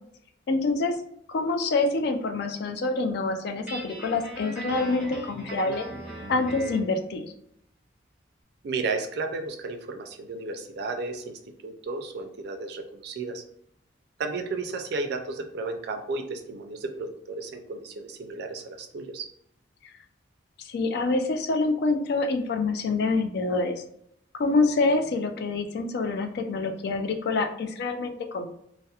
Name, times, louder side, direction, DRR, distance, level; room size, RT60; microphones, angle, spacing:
voice 1, 0.5-1.0 1.3-5.9 6.3-7.3 20.6-23.7 24.4-28.5, left 3 dB, 60° left, 6 dB, 0.3 m, -26 dB
Guitar, 3.7-6.9, right 1 dB, 5° right, 0.9 m, -39 dB
voice 2, 8.6-13.4 14.2-19.3, right 3 dB, 60° right, 6 dB, 0.3 m, -33 dB
2.7 x 2.0 x 2.3 m, 0.73 s
head